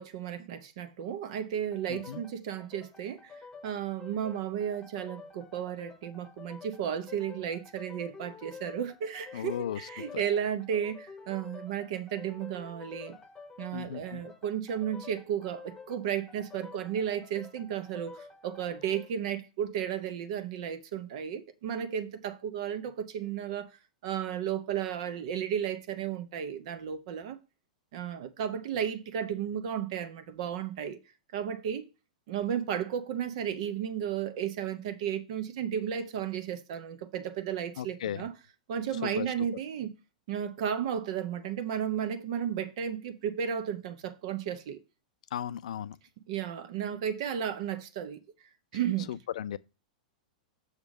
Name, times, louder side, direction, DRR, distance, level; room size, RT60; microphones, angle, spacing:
voice 1, 0.0-13.2 13.6-23.7 24.0-27.4 27.9-31.0 31.3-31.9 32.3-38.3 38.7-39.9 40.3-44.8 46.3-48.2 48.7-49.2, right 9 dB, 55° right, 0.8 m, -34 dB
sound 1, 1.7-19.1, left 4 dB, 15° left, 1.0 m, -50 dB
voice 2, 1.9-2.2 9.3-9.8 10.1-10.2 13.7-14.2 37.8-38.3 39.0-39.3 45.3-46.0 49.1-49.6, left 10 dB, 60° left, 0.4 m, -36 dB
6.5 x 3.7 x 6.1 m
figure-of-eight pair, 100°, 4 cm